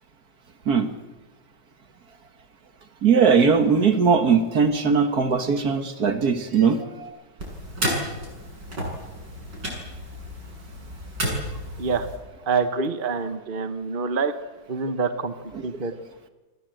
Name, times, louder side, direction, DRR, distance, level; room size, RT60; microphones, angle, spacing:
voice 1, 3.0-7.1, right 5 dB, 60° right, 7 dB, 2.2 m, -20 dB
sound 1, 7.4-12.2, equal, 85° right, 8.1 m, -32 dB
voice 2, 12.5-14.3 14.7-15.3 15.6-15.9, right 5 dB, 35° right, 9 dB, 1.3 m, -26 dB
29.5 x 22.0 x 7.9 m, 1.2 s
omnidirectional pair, 1.8 m